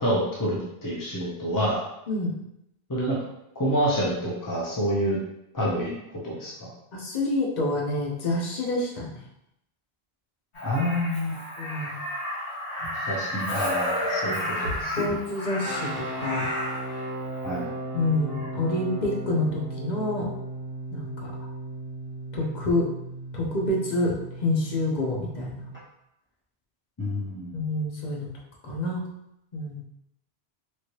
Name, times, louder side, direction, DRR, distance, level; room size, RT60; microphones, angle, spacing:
voice 1, 0.0-1.8 2.9-3.2 3.6-5.2 5.5-6.7 10.6-11.4 12.9-14.9 17.4-17.7 27.0-27.5, equal, 25° left, -6 dB, 0.5 m, -27 dB
voice 2, 6.9-9.2 11.6-12.0 15.0-16.5 17.9-20.3 20.9-21.3 22.3-22.9 23.3-24.2 24.4-25.6 27.5-28.3 28.6-29.0 29.5-29.8, left 2 dB, 50° left, -2 dB, 0.8 m, -27 dB
Crow, 10.5-16.9 18.3-18.5, left 1 dB, 65° left, 1.7 m, -31 dB
sound 1, 15.6-25.8, right 2 dB, 15° right, 0.7 m, -36 dB
3.1 x 2.6 x 3.0 m, 0.82 s
omnidirectional pair, 1.1 m